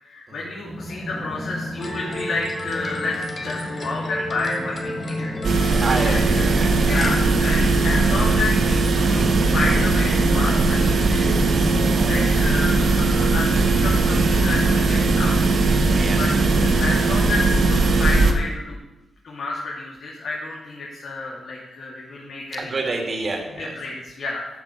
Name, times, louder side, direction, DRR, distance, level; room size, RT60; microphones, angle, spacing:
voice 1, 0.0-6.4 6.8-9.2 9.5-11.4 12.1-15.4 16.2-16.3 16.8-18.8 19.2-22.7 23.6-24.5, left 3 dB, 60° left, -5 dB, 2.9 m, -30 dB
sound 1, 0.7-17.8, right 1 dB, 5° right, 1.3 m, -29 dB
sound 2, 1.8-7.1, left 1 dB, 35° left, 2.2 m, -34 dB
sound 3, 5.4-18.3, right 3 dB, 55° right, 1.4 m, -19 dB
voice 2, 5.8-6.9 15.9-16.3 16.7-16.8 22.6-23.7, right 3 dB, 35° right, 2 dB, 2.4 m, -28 dB
13.5 x 8.1 x 6.7 m, 1.0 s
wide cardioid pair, 145°, 0 cm